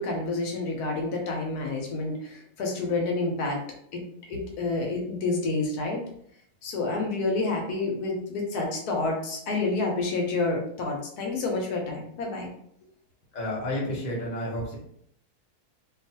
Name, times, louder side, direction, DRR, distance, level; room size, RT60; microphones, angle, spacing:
voice 1, 0.0-3.6 3.9-6.0 6.6-12.5, left 3 dB, 75° left, 1 dB, 1.1 m, -29 dB
voice 2, 13.3-14.8, left 1 dB, 45° left, -4 dB, 0.5 m, -31 dB
2.6 x 2.3 x 2.7 m, 0.68 s
omnidirectional pair, 1.8 m